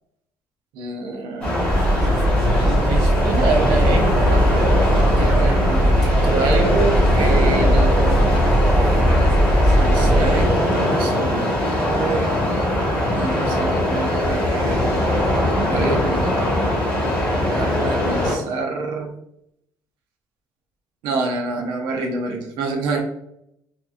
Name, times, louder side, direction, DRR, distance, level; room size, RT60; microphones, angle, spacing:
voice 1, 0.7-1.5 2.6-4.8 5.2-8.4 9.6-12.3 13.1-14.8 15.7-16.7 17.5-19.1 21.0-23.0, right 3 dB, 90° right, 3 dB, 0.6 m, -27 dB
sound 1, 1.4-18.3, left 1 dB, 15° left, 0.9 m, -21 dB
sound 2, 1.7-10.4, equal, 10° right, 0.8 m, -19 dB
2.8 x 2.3 x 2.3 m, 0.77 s
cardioid pair, 170°, 8 cm